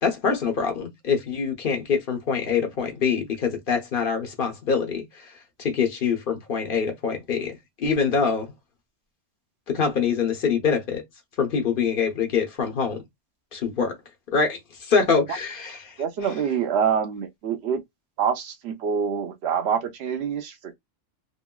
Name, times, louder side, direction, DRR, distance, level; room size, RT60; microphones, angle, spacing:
voice 1, 0.0-5.3 5.6-8.5 9.7-11.0 11.4-13.0 13.5-14.0 14.3-15.9, left 6 dB, 50° left, 1.0 m, -25 dB
voice 2, 16.0-17.8 18.2-20.7, right 7 dB, 65° right, 0.8 m, -26 dB
3.0 x 2.7 x 2.2 m
omnidirectional pair, 1.3 m